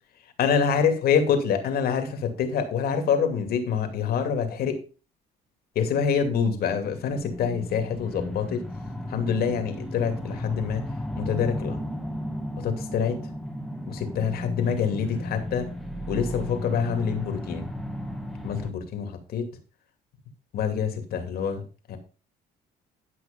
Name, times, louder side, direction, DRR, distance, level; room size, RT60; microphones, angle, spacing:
voice 1, 0.4-4.8 5.7-8.6 9.1-10.9 11.2-11.8 12.6-13.2 13.9-15.7 16.1-17.7 18.4-19.5 20.5-22.0, left 7 dB, 65° left, 6 dB, 2.6 m, -26 dB
sound 1, 6.8-18.7, left 1 dB, ahead, 1.4 m, -34 dB
11.5 x 5.8 x 5.2 m, 0.35 s
cardioid pair, 110°, 17 cm